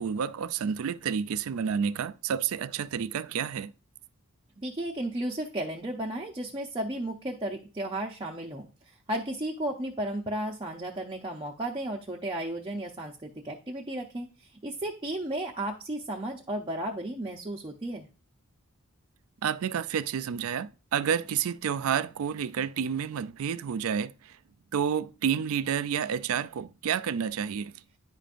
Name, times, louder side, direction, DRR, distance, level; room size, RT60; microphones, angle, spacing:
voice 1, 0.0-3.7 19.4-24.4 24.7-27.7, right 7 dB, 65° right, 0.4 m, -30 dB
voice 2, 4.6-8.7 9.1-14.3 14.6-18.1, right 1 dB, 20° right, 0.6 m, -34 dB
9.8 x 5.1 x 2.5 m
head